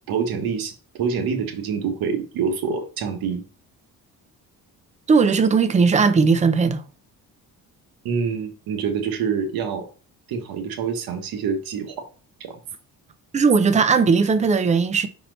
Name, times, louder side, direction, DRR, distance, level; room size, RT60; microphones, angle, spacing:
voice 1, 0.1-3.4 8.0-9.9 10.3-12.1 12.4-12.6, right 6 dB, 80° right, 1.3 m, -26 dB
voice 2, 5.1-6.8 13.3-15.1, right 5 dB, 20° right, 0.4 m, -18 dB
5.6 x 4.3 x 3.9 m
cardioid pair, 170°, 36 cm